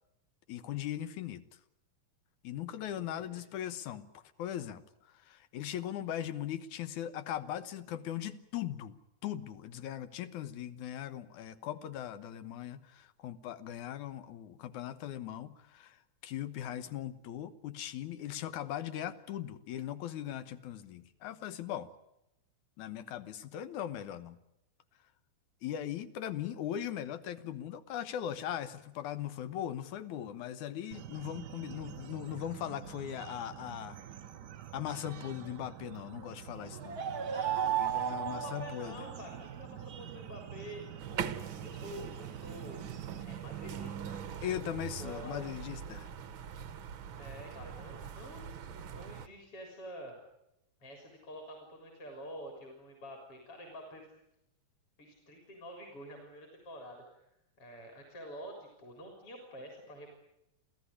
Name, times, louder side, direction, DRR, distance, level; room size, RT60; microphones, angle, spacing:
voice 1, 0.5-1.4 2.4-21.9 22.8-24.4 25.6-34.0 34.7-37.0 37.8-39.0 44.4-46.1, left 11 dB, 75° left, 13 dB, 2.5 m, -39 dB
voice 2, 2.8-3.4 37.2-42.8 43.2-44.3 44.5-45.5 47.2-48.6 48.9-50.2 50.8-54.1 55.0-57.3 57.6-60.2, equal, 45° left, 2 dB, 4.6 m, -48 dB
sound 1, 30.9-43.2, right 9 dB, 90° right, 0.9 m, -47 dB
sound 2, 36.6-39.5, right 10 dB, 45° right, 1.4 m, -34 dB
sound 3, 41.0-49.3, right 8 dB, 60° right, 1.3 m, -42 dB
27.5 x 15.5 x 9.9 m, 0.86 s
omnidirectional pair, 3.5 m